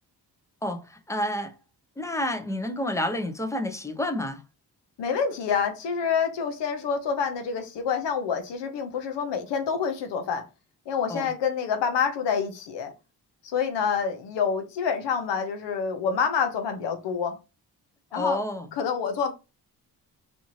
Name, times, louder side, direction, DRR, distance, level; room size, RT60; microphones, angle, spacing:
voice 1, 0.6-1.5 2.0-4.4 11.1-11.3 18.1-18.7, left 1 dB, 10° left, 0.5 m, -29 dB
voice 2, 5.0-10.4 10.9-12.9 13.5-17.4 18.1-18.4 18.8-19.3, left 6 dB, 90° left, 0.7 m, -27 dB
2.6 x 2.5 x 3.0 m
cardioid pair, 70°, 42 cm